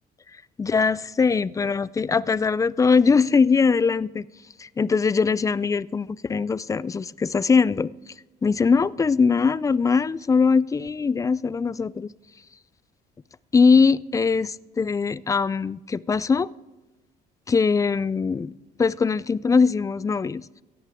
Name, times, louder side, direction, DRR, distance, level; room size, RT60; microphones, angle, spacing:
voice 1, 0.6-4.3 4.6-7.9 8.4-12.1 13.5-16.5 17.5-18.5 18.8-20.5, left 5 dB, 20° left, 20 dB, 0.4 m, -21 dB
17.0 x 13.5 x 3.6 m, 1.1 s
cardioid pair, 110°, 17 cm